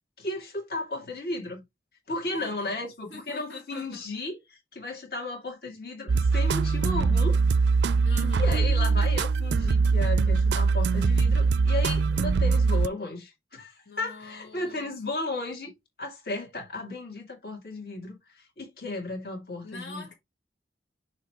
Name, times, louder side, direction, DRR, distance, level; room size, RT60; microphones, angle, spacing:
voice 1, 0.2-1.6 2.1-7.8 8.4-15.7 16.0-20.0, left 2 dB, 55° left, 2.3 m, -35 dB
voice 2, 2.2-4.0 8.0-8.5 13.9-14.9 19.6-20.1, left 4 dB, 80° left, 1.7 m, -44 dB
sound 1, 6.1-12.9, right 4 dB, 75° right, 0.4 m, -22 dB
6.6 x 3.0 x 4.7 m
head